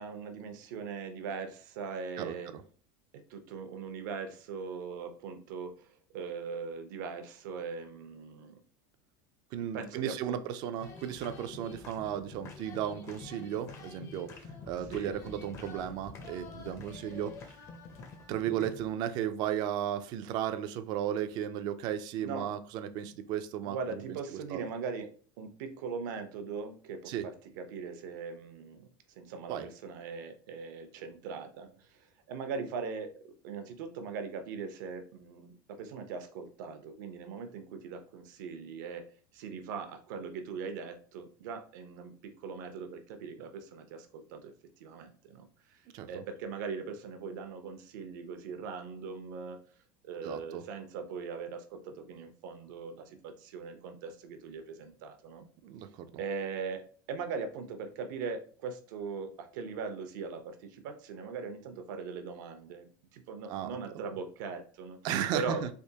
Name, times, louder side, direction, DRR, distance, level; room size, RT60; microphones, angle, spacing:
voice 1, 0.0-2.5 3.1-5.9 6.1-8.5 9.7-10.4 14.9-15.2 22.2-22.5 23.6-25.1 25.4-28.9 29.2-33.1 33.4-39.0 39.3-45.8 46.1-49.6 50.0-55.4 56.2-62.9 63.1-65.0 65.3-65.6, right 5 dB, 80° right, 6 dB, 0.7 m, -40 dB
voice 2, 2.2-2.6 9.5-17.3 18.3-24.2 24.5-24.6 27.1-27.3 29.5-29.6 45.9-46.2 50.2-50.6 55.6-56.1 63.5-63.7 65.0-65.7, right 10 dB, 45° right, 9 dB, 0.4 m, -35 dB
sound 1, 10.8-18.9, left 4 dB, 30° left, 0.5 m, -47 dB
3.4 x 2.9 x 2.8 m, 0.43 s
supercardioid pair, 155°, 10 cm